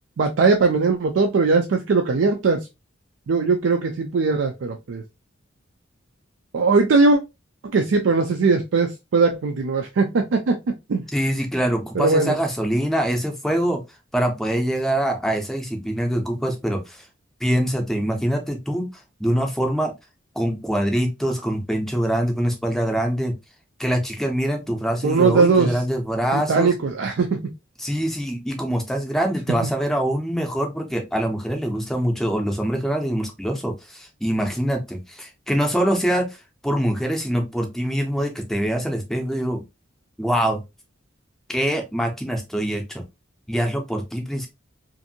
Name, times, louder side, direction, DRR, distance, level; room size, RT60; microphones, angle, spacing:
voice 1, 0.2-2.6 3.3-5.0 6.5-7.2 7.7-10.5 10.9-11.0 12.0-12.3 25.0-25.8 26.3-27.4, right 4 dB, 80° right, 4 dB, 0.4 m, -19 dB
voice 2, 11.1-13.8 14.1-17.1 17.4-18.9 19.2-19.9 20.3-23.3 23.8-26.7 27.8-36.3 36.6-39.6 40.2-40.6 41.5-43.0 43.5-44.5, equal, ahead, 3 dB, 0.5 m, -24 dB
2.6 x 2.6 x 2.6 m, 0.23 s
head